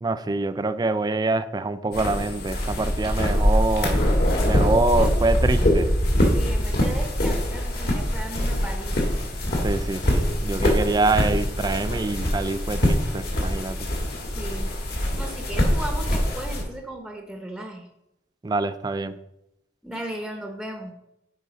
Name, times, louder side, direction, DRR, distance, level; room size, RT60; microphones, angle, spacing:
voice 1, 0.0-4.0 4.4-5.9 9.6-13.8 18.4-19.2, right 3 dB, 20° right, 12 dB, 0.3 m, -25 dB
sound 1, 1.9-16.6, equal, 55° left, 1.7 m, -23 dB
voice 2, 6.2-9.0 14.3-14.7 15.2-17.9 19.8-20.9, right 1 dB, ahead, 2 dB, 0.7 m, -36 dB
8.9 x 3.8 x 5.1 m, 0.84 s
head